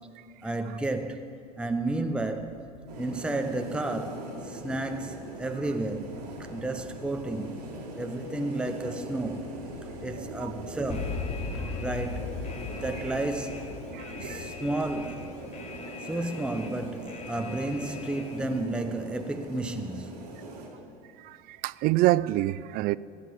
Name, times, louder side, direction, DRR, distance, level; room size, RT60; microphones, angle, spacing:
voice 1, 0.4-1.3 1.6-2.6 3.0-7.6 7.9-9.5 10.0-11.3 11.8-13.7 14.2-15.3 16.0-20.4, right 2 dB, 5° right, 0.7 m, -32 dB
sound 1, 1.6-15.3, left 5 dB, 85° left, 0.9 m, -48 dB
sound 2, 2.9-20.7, right 2 dB, 90° right, 2.6 m, -42 dB
voice 2, 10.1-10.5 13.9-14.5 21.2-23.0, right 17 dB, 50° right, 0.4 m, -27 dB
Alarm, 10.9-18.6, left 5 dB, 35° left, 1.3 m, -39 dB
15.0 x 6.2 x 8.3 m
hypercardioid pair, 85°, 20 cm